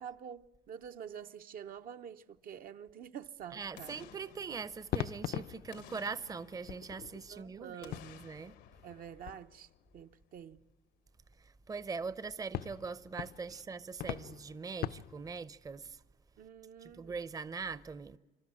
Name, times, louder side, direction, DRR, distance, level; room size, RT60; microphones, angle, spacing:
voice 1, 0.0-4.1 7.3-8.1 8.8-10.6 16.4-17.2, right 8 dB, 60° right, 0.7 m, -48 dB
voice 2, 3.5-8.5 11.4-16.0 16.8-18.2, right 5 dB, 20° right, 0.6 m, -42 dB
Boom, 3.7-5.3 5.7-7.3 7.8-10.1 10.4-10.5, left 10 dB, 85° left, 1.2 m, -57 dB
sound 1, 4.2-4.5 4.9-10.0 11.3-11.4 12.5-15.4, left 12 dB, 65° left, 0.6 m, -43 dB
26.5 x 12.5 x 8.8 m
cardioid pair, 110°, 17 cm